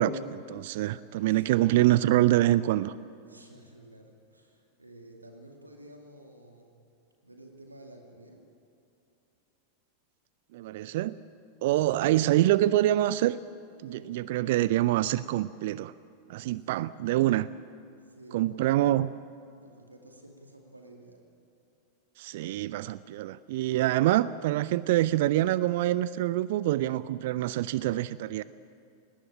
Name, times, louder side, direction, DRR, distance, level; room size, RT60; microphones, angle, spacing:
voice 1, 0.0-2.9 10.5-11.2 11.6-13.4 13.8-15.9 16.3-17.5 18.3-19.1 22.2-28.4, right 14 dB, 50° right, 18 dB, 0.4 m, -25 dB
voice 2, 3.2-6.8 7.2-8.4 11.8-12.2 13.8-14.1 16.4-16.7 18.0-18.6 19.6-21.2, right 1 dB, 80° right, 2 dB, 2.4 m, -51 dB
20.5 x 19.0 x 8.6 m, 2.6 s
figure-of-eight pair, 90°, 0 cm